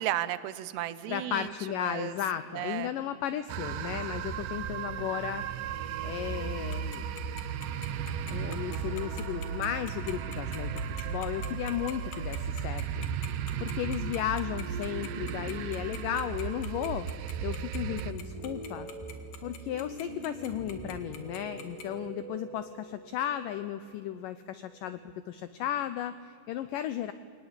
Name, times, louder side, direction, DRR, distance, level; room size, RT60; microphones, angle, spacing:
voice 1, 0.0-2.2 2.5-2.9, right 14 dB, 90° right, 15 dB, 3.0 m, -34 dB
voice 2, 1.1-5.4 6.0-7.1 8.3-13.1 13.6-17.1 17.4-18.9 19.4-27.1, left 11 dB, 85° left, 13 dB, 1.9 m, -35 dB
sound 1, 3.5-18.1, right 8 dB, 70° right, 2.1 m, -35 dB
Tick-tock, 6.7-21.8, left 9 dB, 65° left, 3.6 m, -44 dB
sound 2, 17.8-25.3, right 2 dB, 10° right, 2.8 m, -44 dB
23.0 x 19.5 x 8.8 m, 2.3 s
omnidirectional pair, 4.7 m